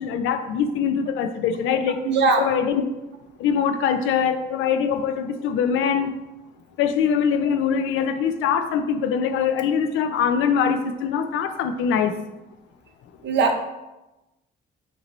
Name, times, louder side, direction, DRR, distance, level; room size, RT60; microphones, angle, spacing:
voice 1, 0.0-2.0 2.4-2.8 3.4-6.1 6.8-12.1, left 7 dB, 90° left, 8 dB, 0.4 m, -23 dB
voice 2, 2.0-2.5 13.2-13.6, right 4 dB, 65° right, 5 dB, 0.7 m, -19 dB
5.2 x 2.7 x 3.0 m, 1.0 s
cardioid pair, 90°, 20 cm